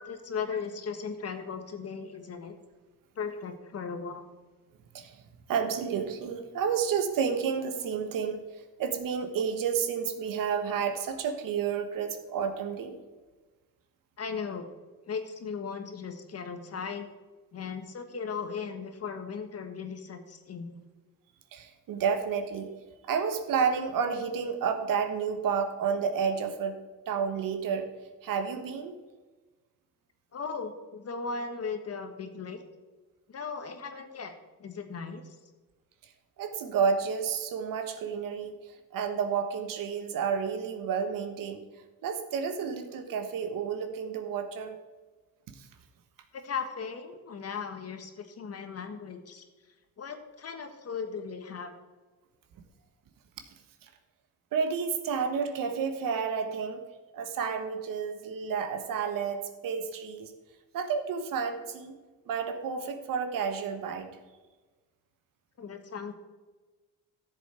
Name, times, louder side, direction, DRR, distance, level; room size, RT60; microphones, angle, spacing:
voice 1, 0.0-2.5 3.2-4.2 14.2-14.7 15.0-17.1 17.5-20.8 30.3-32.6 33.3-34.3 34.6-35.3 46.3-49.4 50.0-51.7 65.6-66.1, left 5 dB, 45° left, 7 dB, 1.5 m, -37 dB
voice 2, 5.5-8.4 8.8-13.0 21.5-22.7 23.0-26.8 27.1-27.9 28.2-28.9 36.4-38.5 38.9-41.6 42.0-44.8 45.6-45.7 53.8-53.9 54.5-56.8 57.1-60.3 60.7-61.9 62.3-64.1, right 6 dB, 75° right, 7 dB, 1.4 m, -30 dB
13.0 x 7.3 x 4.4 m, 1.3 s
cardioid pair, 95°, 34 cm